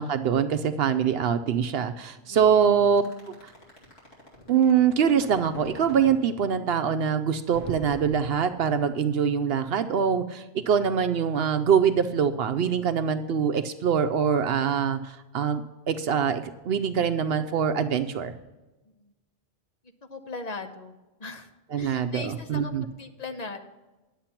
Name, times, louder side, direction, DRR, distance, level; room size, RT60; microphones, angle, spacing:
voice 1, 0.0-3.0 4.5-18.3 21.7-22.8, right 7 dB, 75° right, 8 dB, 0.8 m, -24 dB
voice 2, 2.3-2.9 19.0-19.1 20.1-20.9 21.2-21.5 21.8-23.6, left 3 dB, 45° left, 6 dB, 1.0 m, -39 dB
sound 1, 3.0-6.2 7.5-8.9, left 1 dB, 85° left, 2.8 m, -43 dB
10.0 x 7.5 x 5.8 m, 1.1 s
omnidirectional pair, 1.0 m